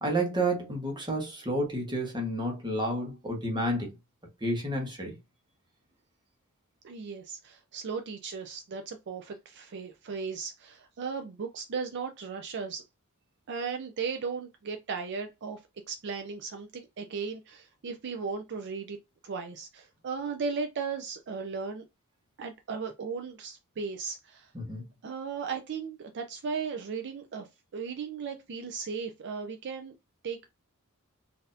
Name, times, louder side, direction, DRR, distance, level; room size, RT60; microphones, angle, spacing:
voice 1, 0.0-3.9 4.4-5.1 24.5-24.8, right 1 dB, 20° right, 1.2 m, -30 dB
voice 2, 6.8-12.8 13.5-15.6 15.9-19.0 19.2-21.8 22.4-24.5 25.0-27.5 27.7-29.9 30.2-30.5, right 5 dB, 55° right, 0.4 m, -36 dB
3.9 x 2.7 x 2.6 m
head